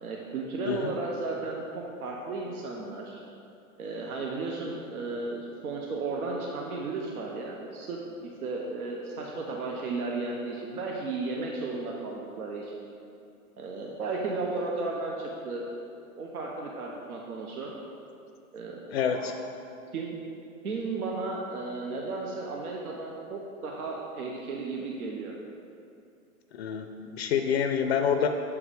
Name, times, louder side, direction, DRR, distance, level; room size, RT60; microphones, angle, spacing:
voice 1, 0.0-3.2 3.8-12.9 13.6-15.7 16.2-17.7 18.5-19.3 19.9-20.2 20.6-25.3, right 3 dB, 80° right, -1 dB, 1.1 m, -34 dB
voice 2, 18.9-19.3 26.5-28.3, left 7 dB, 45° left, 6 dB, 0.5 m, -27 dB
7.3 x 4.8 x 5.0 m, 2.5 s
hypercardioid pair, 135°, 44 cm